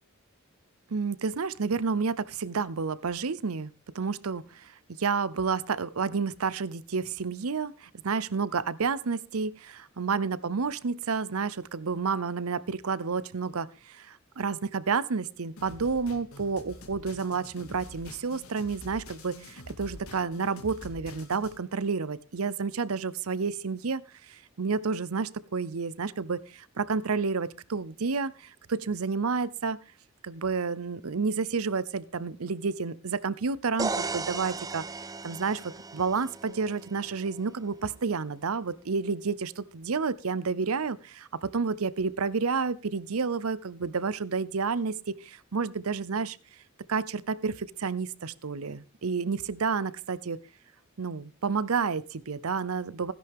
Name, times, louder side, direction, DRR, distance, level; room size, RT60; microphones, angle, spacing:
voice 1, 0.9-24.0 24.3-29.8 30.2-34.9 35.2-46.4 46.9-50.4 51.0-53.1, right 5 dB, 90° right, 0.7 m, -30 dB
sound 1, 15.6-21.6, left 1 dB, 85° left, 2.2 m, -47 dB
sound 2, 33.8-37.6, right 4 dB, 15° right, 0.5 m, -36 dB
16.0 x 10.5 x 3.6 m
head